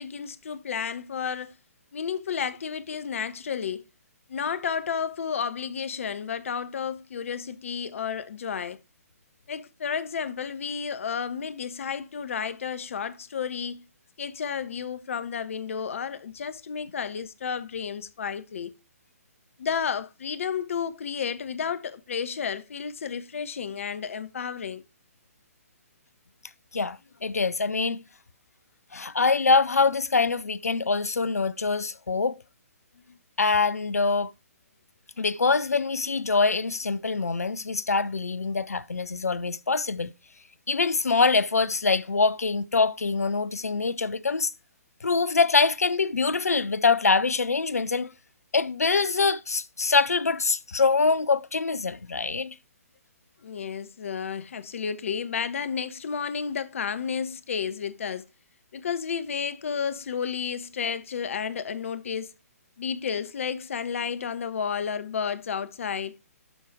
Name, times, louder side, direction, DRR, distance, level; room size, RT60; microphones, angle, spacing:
voice 1, 0.0-1.5 1.9-3.8 4.3-8.8 9.5-13.8 14.2-18.7 19.6-24.8 53.4-58.2 58.7-62.3 62.8-66.1, left 7 dB, 60° left, 1.1 m, -32 dB
voice 2, 26.7-28.0 28.9-32.4 33.4-34.3 35.2-40.1 40.7-44.5 45.0-48.1 48.5-52.5, left 4 dB, 80° left, 0.7 m, -24 dB
12.0 x 4.5 x 4.7 m
figure-of-eight pair, 130°, 8 cm